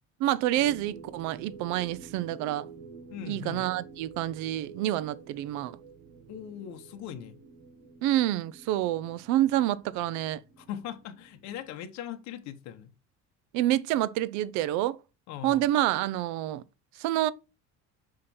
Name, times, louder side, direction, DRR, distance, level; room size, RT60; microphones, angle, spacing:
voice 1, 0.2-2.7 3.3-5.7 8.0-10.4 13.5-15.0 15.4-16.6 17.0-17.3, right 13 dB, 75° right, 0.6 m, -28 dB
sound 1, 0.6-11.7, right 5 dB, 40° right, 1.5 m, -49 dB
voice 2, 3.1-3.7 6.3-7.4 10.6-12.9 15.3-15.7, left 10 dB, 65° left, 1.1 m, -40 dB
5.7 x 5.1 x 4.2 m
cardioid pair, 160°, 29 cm